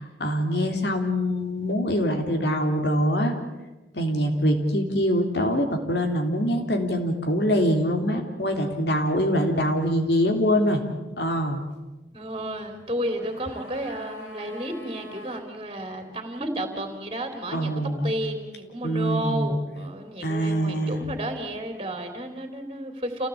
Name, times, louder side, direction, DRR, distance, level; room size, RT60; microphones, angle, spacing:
voice 1, 0.0-3.3 3.9-10.8 11.2-11.6 17.5-18.1 18.8-19.5 20.2-21.0, equal, 65° left, 4 dB, 3.5 m, -24 dB
voice 2, 12.1-17.7 18.0-23.3, right 1 dB, 25° right, 6 dB, 3.5 m, -32 dB
sound 1, 12.9-15.5 15.7-15.8, equal, 85° left, 4.5 m, -44 dB
28.5 x 17.5 x 8.6 m, 1.1 s
head